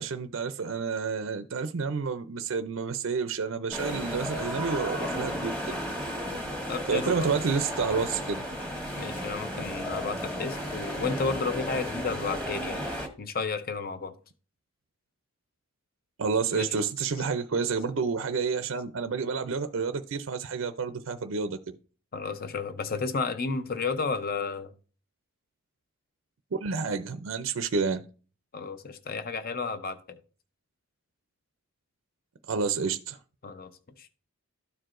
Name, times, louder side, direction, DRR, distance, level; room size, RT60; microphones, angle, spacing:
voice 1, 0.0-5.8 6.9-8.5 16.2-21.8 26.5-28.0 32.5-33.2, right 5 dB, 65° right, 0.5 m, -29 dB
sound 1, 3.7-13.1, equal, 5° left, 1.2 m, -34 dB
sound 2, 6.7-12.0, equal, 80° left, 1.9 m, -47 dB
voice 2, 6.7-7.3 9.0-12.8 13.2-14.1 16.6-16.7 22.1-24.7 28.5-30.2 33.4-33.7 34.0-34.1, left 4 dB, 45° left, 0.6 m, -32 dB
13.0 x 4.6 x 2.5 m
head